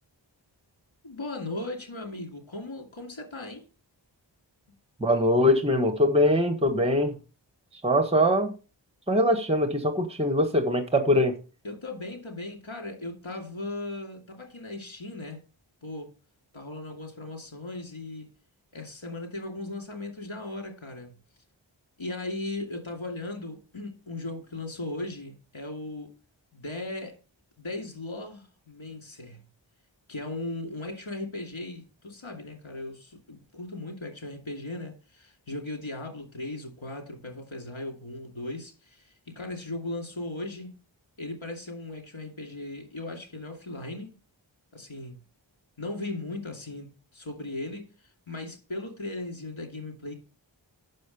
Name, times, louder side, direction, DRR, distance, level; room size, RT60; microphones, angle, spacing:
voice 1, 1.0-3.6 11.6-15.4 15.8-16.1 16.5-18.3 18.7-21.1 22.0-26.2 26.5-27.2 27.6-29.4 30.1-40.8 41.2-44.2 44.7-45.2 45.8-47.9 48.3-50.1, left 2 dB, 90° left, 2.6 m, -37 dB
voice 2, 5.0-7.2 7.8-8.5 9.1-11.3, left 1 dB, 15° right, 1.4 m, -22 dB
7.6 x 6.4 x 5.2 m
wide cardioid pair, 40°, 46 cm